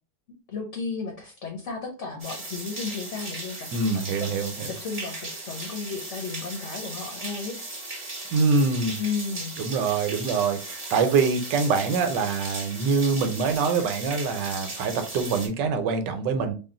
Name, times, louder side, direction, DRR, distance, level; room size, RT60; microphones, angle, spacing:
voice 1, 0.5-4.3 4.7-7.5 9.0-9.6, left 5 dB, 55° left, 3 dB, 0.9 m, -34 dB
sound 1, 2.2-15.5, right 2 dB, 30° right, 1.2 m, -37 dB
voice 2, 3.7-4.7 8.3-9.0 9.6-16.5, right 4 dB, 90° right, 7 dB, 1.3 m, -24 dB
3.7 x 2.3 x 3.7 m, 0.35 s
omnidirectional pair, 1.8 m